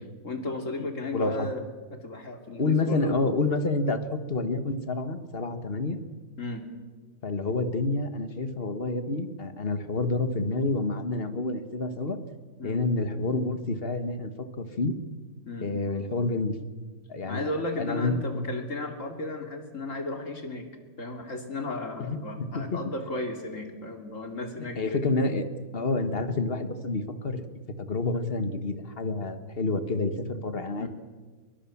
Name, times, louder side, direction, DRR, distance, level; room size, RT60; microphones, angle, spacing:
voice 1, 0.2-1.6 1.9-3.2 6.4-6.6 12.6-12.8 15.5-15.7 17.3-20.7 21.0-25.0 30.8-30.9, left 2 dB, 60° left, 5 dB, 3.1 m, -34 dB
voice 2, 1.1-1.5 2.6-6.0 7.2-12.2 12.6-14.9 15.6-16.6 17.1-17.5 17.8-18.4 22.0-22.8 24.6-25.5 25.7-27.4 27.8-30.9, left 3 dB, 40° left, 10 dB, 1.7 m, -28 dB
22.5 x 22.5 x 7.3 m, 1.4 s
omnidirectional pair, 1.5 m